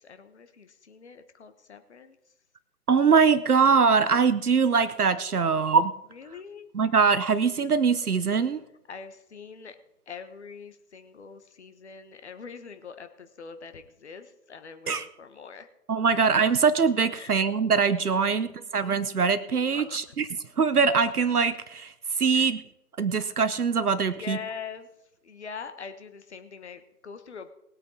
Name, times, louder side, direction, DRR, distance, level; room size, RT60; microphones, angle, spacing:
voice 1, 0.0-2.2 6.2-6.7 8.9-9.7 10.1-15.7 17.2-17.3 18.2-18.3 18.6-18.7 19.7-20.0 22.3-22.5 24.2-24.9 25.2-27.5, left 6 dB, 45° left, 9 dB, 1.3 m, -43 dB
voice 2, 2.9-5.9 6.7-8.6 14.9-15.1 15.9-20.3 20.6-22.6 23.0-24.4, right 5 dB, 65° right, 12 dB, 0.9 m, -23 dB
20.0 x 8.3 x 3.9 m, 0.85 s
figure-of-eight pair, 145°, 49 cm